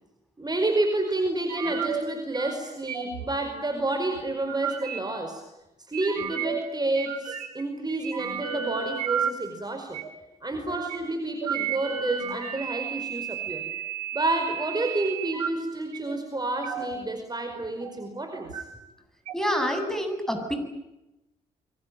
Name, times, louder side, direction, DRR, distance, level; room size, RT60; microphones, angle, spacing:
voice 1, 0.4-5.4 5.9-10.0 10.4-13.7 14.1-18.6, right 2 dB, 20° right, 5 dB, 5.0 m, -29 dB
sound 1, 1.5-2.0 2.3-2.6 2.9-3.2 4.2-5.0 5.9-6.6 7.0-7.6 7.9-9.3 9.9-10.1 10.7-11.0 11.4-15.5 15.9-16.2 16.6-16.9 17.3-18.1 18.4-18.6 19.3-19.4, right 8 dB, 85° right, 2.1 m, -32 dB
voice 2, 19.3-20.6, equal, ahead, 6 dB, 8.0 m, -27 dB
27.5 x 23.5 x 9.1 m, 0.93 s
figure-of-eight pair, 40°, 19 cm